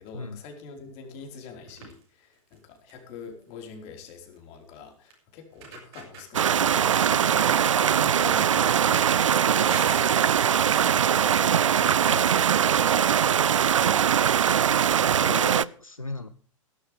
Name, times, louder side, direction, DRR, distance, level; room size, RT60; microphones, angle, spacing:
voice 1, 0.0-9.2 9.5-12.4 13.1-13.9, left 5 dB, 40° left, 3 dB, 4.7 m, -45 dB
sound 1, 1.7-2.0 2.5-2.6 2.9-3.2 4.4-4.5 5.1-5.2 5.5-7.0 7.4-9.1 9.7-12.5 12.8-13.9 14.8-14.9 15.1-15.2 15.5-15.6, right 5 dB, 50° right, 6.8 m, -43 dB
sound 2, 6.3-15.6, right 9 dB, 65° right, 0.6 m, -21 dB
voice 2, 15.2-16.3, left 2 dB, 90° left, 12 dB, 0.9 m, -35 dB
17.0 x 13.0 x 3.5 m, 0.43 s
figure-of-eight pair, 100°, 17 cm